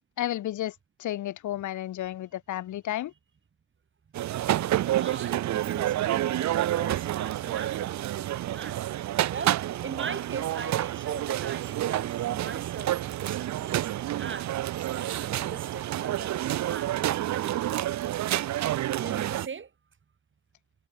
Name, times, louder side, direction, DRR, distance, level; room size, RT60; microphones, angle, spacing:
voice 1, 0.2-0.7 1.0-3.1, left 13 dB, 75° left, 2.2 m, -32 dB
sound 1, 4.1-19.5, right 13 dB, 65° right, 0.9 m, -29 dB
voice 2, 4.8-8.8 9.3-14.5 14.9-19.7, right 6 dB, 40° right, 4.3 m, -40 dB
cardioid pair, 90°, 30 cm